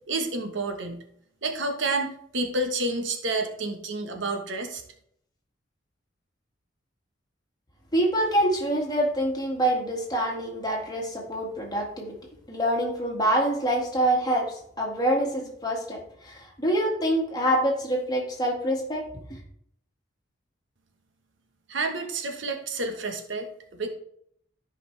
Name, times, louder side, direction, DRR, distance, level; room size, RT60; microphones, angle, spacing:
voice 1, 0.1-1.0 1.4-4.8 21.7-23.5 23.8-23.9, right 2 dB, 75° right, 5 dB, 1.2 m, -29 dB
voice 2, 7.9-12.2 12.5-19.4, right 1 dB, 20° left, -2 dB, 1.9 m, -26 dB
13.0 x 5.3 x 3.3 m, 0.69 s
head